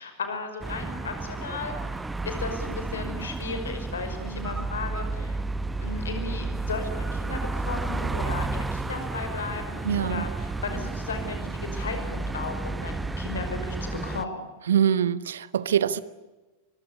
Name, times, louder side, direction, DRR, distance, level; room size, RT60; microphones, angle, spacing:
voice 1, 0.0-1.8 2.2-5.4 5.8-14.4, left 4 dB, 70° left, 5.6 m, -35 dB
sound 1, 0.6-14.3, right 3 dB, 10° right, 1.0 m, -32 dB
voice 2, 9.9-10.2 14.7-16.0, right 9 dB, 65° right, 1.1 m, -24 dB
24.0 x 23.5 x 8.4 m
figure-of-eight pair, 90°, 0 cm